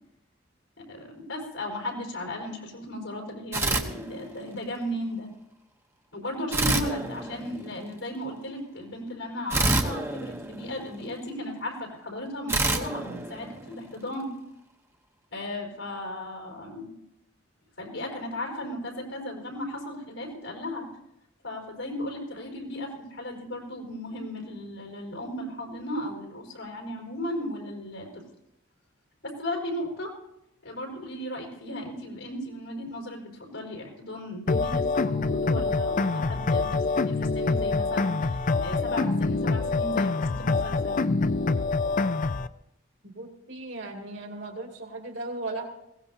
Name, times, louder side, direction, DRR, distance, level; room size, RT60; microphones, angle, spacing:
voice 1, 0.8-5.3 6.1-14.3 15.3-16.9 17.8-20.9 21.4-28.2 29.2-30.1 30.6-41.0, left 1 dB, 90° left, 1 dB, 5.0 m, -36 dB
sound 1, 3.5-4.7 6.5-7.9 9.5-11.2 12.5-14.0, right 2 dB, 15° right, 0.9 m, -28 dB
sound 2, 34.5-42.5, left 3 dB, 40° left, 0.4 m, -25 dB
voice 2, 43.0-45.8, right 2 dB, 65° right, 1 dB, 2.5 m, -37 dB
21.0 x 17.5 x 2.8 m, 0.85 s
head